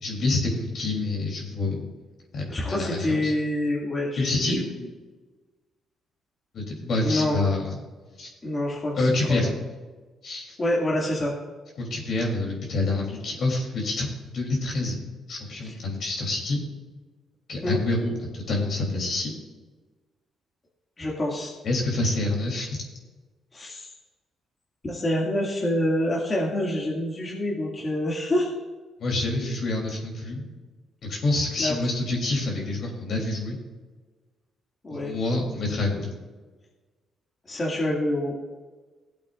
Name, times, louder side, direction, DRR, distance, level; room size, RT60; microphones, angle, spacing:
voice 1, 0.0-1.8 2.3-3.3 4.2-4.6 6.5-7.8 8.2-8.3 9.0-9.5 10.2-10.5 11.8-14.1 14.3-15.0 15.3-16.6 17.5-19.3 21.6-22.8 29.0-30.5 31.0-33.6 34.9-36.1, left 2 dB, 60° left, -1 dB, 3.4 m, -27 dB
voice 2, 2.5-4.7 7.0-7.4 8.4-9.3 10.6-11.3 15.6-15.8 17.6-17.8 21.0-21.5 23.5-23.9 24.8-28.5 31.6-31.7 34.8-35.1 37.5-38.3, left 1 dB, 30° left, -4 dB, 2.4 m, -26 dB
17.5 x 8.2 x 2.6 m, 1.3 s
cardioid pair, 90°, 0 cm